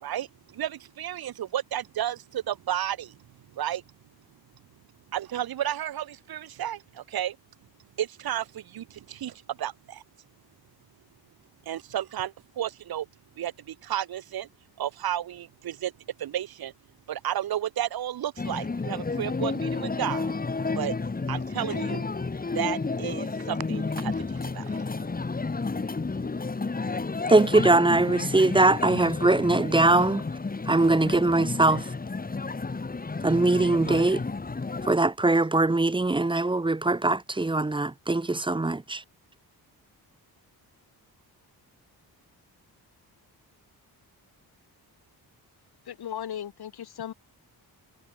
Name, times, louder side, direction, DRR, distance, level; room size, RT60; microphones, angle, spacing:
voice 1, 0.0-3.2 3.5-3.8 5.1-7.4 8.0-10.0 11.7-13.1 13.4-14.5 14.8-15.9 16.2-16.7 17.1-20.3 20.8-20.9 21.3-22.1 22.5-24.8, right 11 dB, 70° right, 1.0 m, -32 dB
sound 1, 18.4-34.9, left 3 dB, 20° left, 2.5 m, -31 dB
voice 2, 27.3-30.2 30.7-31.9 33.2-34.2 34.8-39.0, right 2 dB, 15° right, 0.9 m, -22 dB
voice 3, 45.8-47.1, left 9 dB, 75° left, 3.2 m, -36 dB
wide cardioid pair, 155°, 38 cm